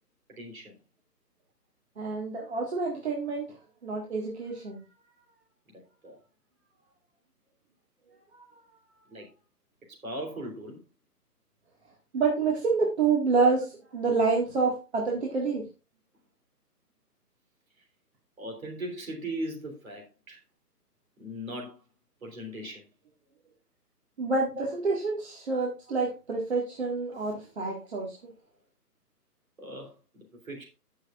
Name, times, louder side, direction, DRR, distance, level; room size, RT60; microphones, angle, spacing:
voice 1, 0.3-0.8 5.7-6.2 9.1-9.3 9.9-10.8 12.5-12.6 18.4-20.4 21.2-21.8 22.2-22.8 24.5-24.7 27.2-27.3 29.6-30.6, right 1 dB, 55° right, 0 dB, 3.5 m, -39 dB
voice 2, 2.0-3.5 3.8-4.8 8.3-8.4 12.1-13.6 13.9-15.7 24.2-28.3, right 4 dB, 40° right, -2 dB, 1.9 m, -27 dB
16.0 x 6.4 x 2.5 m, 0.30 s
figure-of-eight pair, 140°, 48 cm